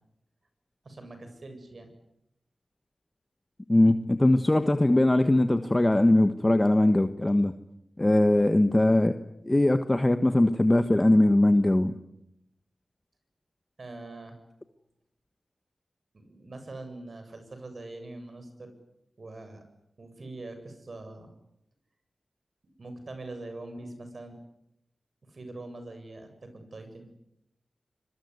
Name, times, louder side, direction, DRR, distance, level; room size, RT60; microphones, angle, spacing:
voice 1, 0.8-1.9 13.8-14.4 16.1-18.7 19.2-19.6 20.0-21.3 22.6-24.3 25.2-27.1, right 2 dB, 55° right, 7 dB, 7.6 m, -43 dB
voice 2, 3.7-7.5 8.0-9.1 9.4-11.9, left 1 dB, 20° left, 9 dB, 1.4 m, -21 dB
26.0 x 23.0 x 9.8 m, 0.78 s
wide cardioid pair, 70°, 0 cm